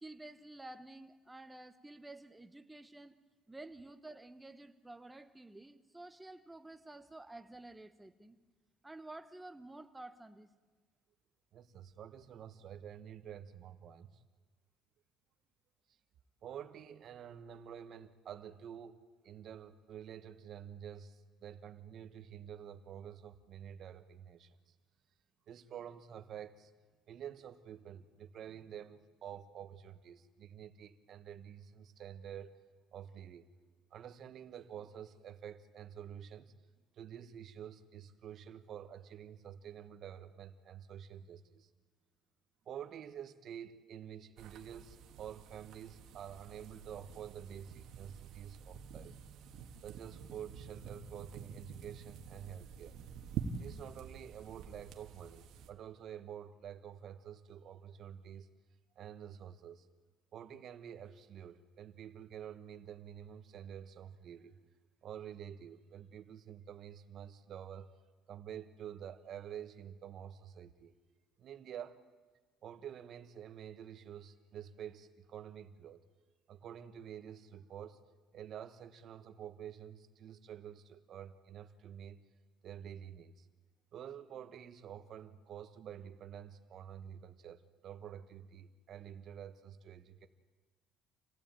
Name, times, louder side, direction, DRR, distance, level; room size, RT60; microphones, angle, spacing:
voice 1, 0.0-3.2 3.5-8.4 8.8-10.5, right 2 dB, 5° right, 8 dB, 0.9 m, -51 dB
voice 2, 11.5-14.2 16.4-19.0 19.2-24.7 25.5-26.7 27.1-32.6 32.9-33.5 33.9-36.5 36.9-41.7 42.6-49.1 49.8-53.0 53.5-58.5 58.9-59.9 60.3-64.5 65.0-67.9 68.3-70.9 71.4-72.0 72.6-76.0 76.5-78.0 78.3-82.2 82.6-83.5 83.9-90.3, right 9 dB, 40° right, 9 dB, 1.3 m, -49 dB
sound 1, 44.4-55.7, right 7 dB, 55° right, 1.7 m, -47 dB
27.5 x 16.0 x 9.0 m, 1.4 s
cardioid pair, 175°, 0 cm